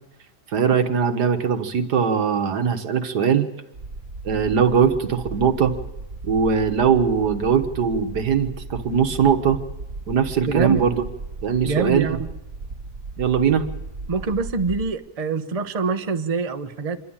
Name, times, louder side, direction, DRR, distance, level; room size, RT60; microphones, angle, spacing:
voice 1, 0.5-3.5 4.3-5.7 6.2-9.6 10.1-11.0 11.4-12.2 13.2-13.7, right 7 dB, 90° right, 7 dB, 1.9 m, -20 dB
sound 1, 3.7-14.9, right 3 dB, 55° right, 1.8 m, -36 dB
voice 2, 10.5-10.8 11.6-12.3 14.1-17.0, right 4 dB, 30° right, 8 dB, 0.8 m, -25 dB
26.5 x 11.5 x 8.9 m, 0.95 s
omnidirectional pair, 1.7 m